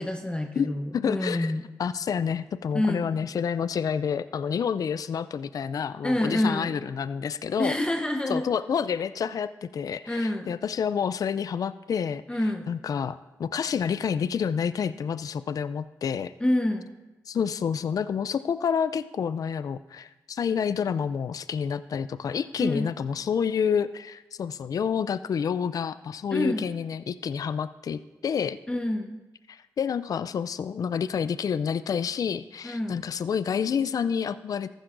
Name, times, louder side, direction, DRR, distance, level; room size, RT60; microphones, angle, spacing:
voice 1, 0.0-1.6 2.7-3.1 6.0-6.7 7.6-8.5 10.1-10.5 12.3-12.7 16.4-16.9 22.6-22.9 26.3-26.7 28.7-29.2 32.6-33.0, left 1 dB, 15° left, 4 dB, 0.9 m, -27 dB
voice 2, 0.6-1.5 1.8-7.7 8.3-16.3 17.3-28.6 29.5-34.7, left 7 dB, 60° left, 14 dB, 0.3 m, -29 dB
14.0 x 11.5 x 2.6 m, 1.1 s
cardioid pair, 55°, 7 cm